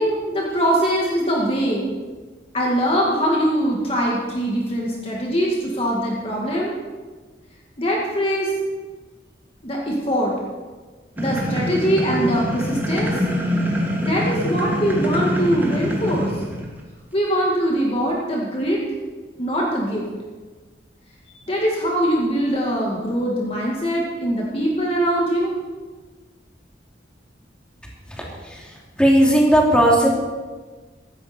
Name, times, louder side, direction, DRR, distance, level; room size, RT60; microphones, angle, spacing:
voice 1, 0.0-1.9 2.5-6.8 7.8-8.5 9.6-10.3 11.2-13.2 14.0-16.3 17.1-18.8 19.4-20.0 21.5-25.5, equal, 35° left, -3 dB, 2.1 m, -22 dB
sound 1, 11.2-16.8, equal, 10° right, 2.4 m, -24 dB
voice 2, 29.0-30.1, equal, 5° left, -3 dB, 2.9 m, -15 dB
16.0 x 13.5 x 4.4 m, 1.4 s
head